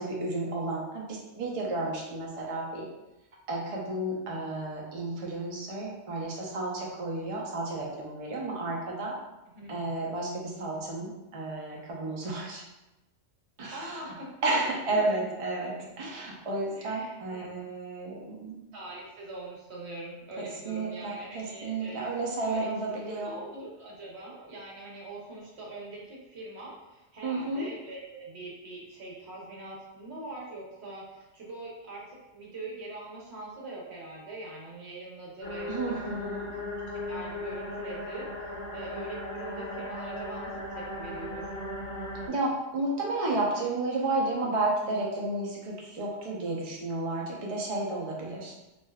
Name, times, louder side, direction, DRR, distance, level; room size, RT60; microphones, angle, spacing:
voice 1, 0.0-2.9 3.5-9.1 9.7-12.6 13.6-14.1 14.4-18.6 20.4-23.3 27.2-27.6 35.7-36.5 42.3-48.5, right 2 dB, 45° right, -3 dB, 0.4 m, -32 dB
voice 2, 13.7-14.3 14.9-15.1 15.8-15.9 16.7-17.5 18.7-36.0 36.9-41.5, right 2 dB, 60° right, -4 dB, 1.0 m, -43 dB
sound 1, 35.4-42.3, left 1 dB, 40° left, 0.5 m, -37 dB
3.3 x 2.5 x 2.2 m, 0.99 s
omnidirectional pair, 1.3 m